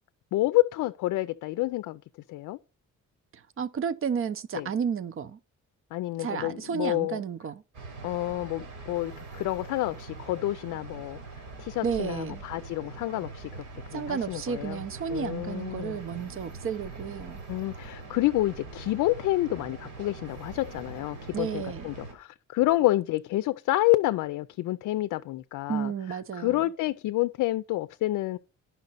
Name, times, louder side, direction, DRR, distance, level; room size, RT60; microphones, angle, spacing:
voice 1, 0.3-2.0 2.3-2.6 4.5-4.7 5.9-7.2 8.0-11.2 11.6-13.5 13.9-14.8 15.1-16.0 17.5-28.4, left 17 dB, 80° left, 0.5 m, -28 dB
voice 2, 3.6-5.4 6.2-7.6 11.8-12.4 13.9-17.4 21.3-21.9 25.7-26.6, right 7 dB, 45° right, 0.7 m, -32 dB
sound 1, 7.7-22.1, right 3 dB, 80° right, 3.5 m, -43 dB
10.5 x 5.7 x 4.1 m
cardioid pair, 90°, 30 cm